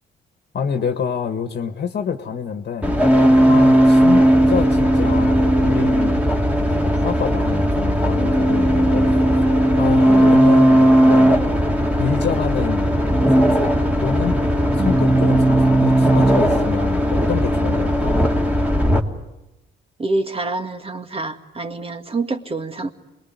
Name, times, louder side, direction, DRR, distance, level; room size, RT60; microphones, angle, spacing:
voice 1, 0.5-3.0 3.5-6.2 6.6-9.1 9.8-11.4 12.0-13.0 13.3-14.4 14.8-18.2, left 6 dB, 55° left, 7 dB, 1.7 m, -27 dB
sound 1, 2.8-19.0, equal, 5° right, 2.5 m, -16 dB
voice 2, 10.1-10.4 14.8-14.9 20.0-22.9, right 3 dB, 30° right, 7 dB, 2.0 m, -26 dB
27.0 x 21.0 x 9.6 m, 0.98 s
cardioid pair, 90°, 20 cm